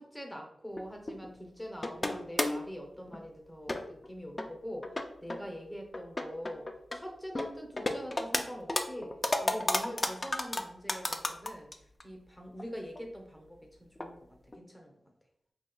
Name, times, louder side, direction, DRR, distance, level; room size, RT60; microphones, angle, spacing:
voice 1, 0.0-4.9 5.2-6.7 6.9-9.1 9.4-14.2 14.5-14.9, equal, 10° left, 2 dB, 0.7 m, -44 dB
sound 1, 0.8-1.3 1.8-2.7 3.1-3.2 3.7-4.1 4.4-4.5 4.8-5.4 5.9-7.0 7.3-8.4 8.7-11.7 12.0-12.1 12.6-12.7 12.9-13.0 14.0-14.1 14.5-14.6, left 2 dB, 30° left, 0.3 m, -32 dB
4.4 x 2.8 x 2.3 m, 0.71 s
wide cardioid pair, 90°, 0 cm